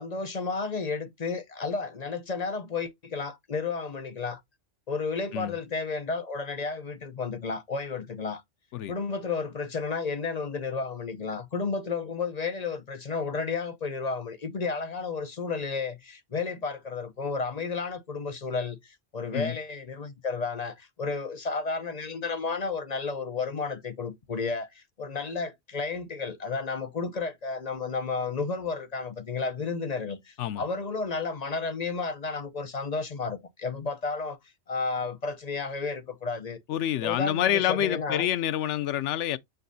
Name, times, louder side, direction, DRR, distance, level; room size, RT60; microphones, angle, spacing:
voice 1, 0.0-4.4 4.9-8.4 8.9-34.4 34.7-36.6 37.0-38.3, left 4 dB, 40° left, 0.7 m, -32 dB
voice 2, 36.7-39.4, left 11 dB, 85° left, 0.9 m, -27 dB
6.7 x 6.1 x 2.6 m
omnidirectional pair, 1.2 m